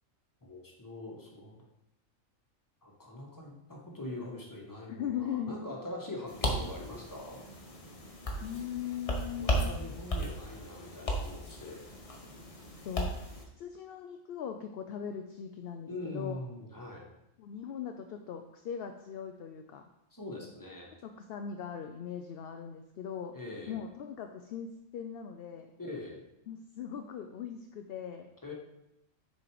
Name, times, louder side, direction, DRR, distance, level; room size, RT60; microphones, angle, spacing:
voice 1, 0.4-1.6 2.8-7.4 9.4-11.9 15.9-17.0 20.1-20.9 23.3-23.8 25.8-26.2 28.4-28.5, left 2 dB, 15° left, -1 dB, 1.3 m, -43 dB
voice 2, 4.9-5.6 8.4-9.7 12.8-13.1 13.6-16.4 17.4-19.8 21.0-23.3 23.7-25.7 26.5-28.3, left 8 dB, 65° left, 5 dB, 0.6 m, -39 dB
sound 1, 6.3-13.4, equal, 30° left, 0.9 m, -36 dB
6.5 x 4.3 x 4.7 m, 0.85 s
omnidirectional pair, 1.3 m